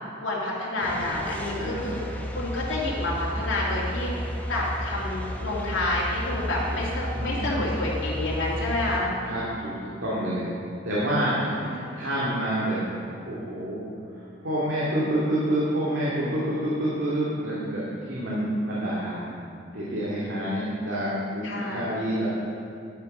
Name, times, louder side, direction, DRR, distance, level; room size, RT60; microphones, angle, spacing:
voice 1, 0.2-2.0 2.3-9.1 11.4-11.9 21.4-21.8, left 1 dB, 80° left, -6 dB, 2.4 m, -29 dB
sound 1, 0.8-9.0, equal, 10° left, 0.8 m, -32 dB
voice 2, 1.6-2.1 7.1-7.7 9.2-10.6 10.8-12.8 13.3-13.8 14.1-19.3 19.7-22.3, right 1 dB, 80° right, -8 dB, 2.3 m, -28 dB
10.5 x 8.9 x 5.5 m, 2.6 s
head